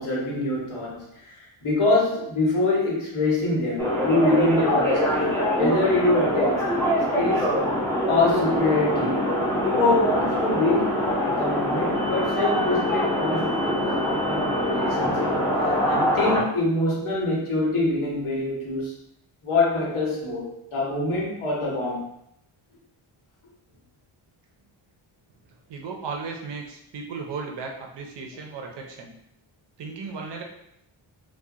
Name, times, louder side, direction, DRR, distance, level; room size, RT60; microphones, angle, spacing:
voice 1, 0.0-6.8 7.2-7.5 8.1-9.3 9.6-11.0 11.4-15.3 15.6-18.9 19.4-22.0, left 2 dB, 75° left, -4 dB, 1.1 m, -25 dB
sound 1, 3.8-16.4, equal, 5° left, 0.3 m, -24 dB
voice 2, 25.7-29.1 29.8-30.4, right 4 dB, 60° right, 1 dB, 0.5 m, -35 dB
2.7 x 2.2 x 2.3 m, 0.78 s
wide cardioid pair, 150°, 50 cm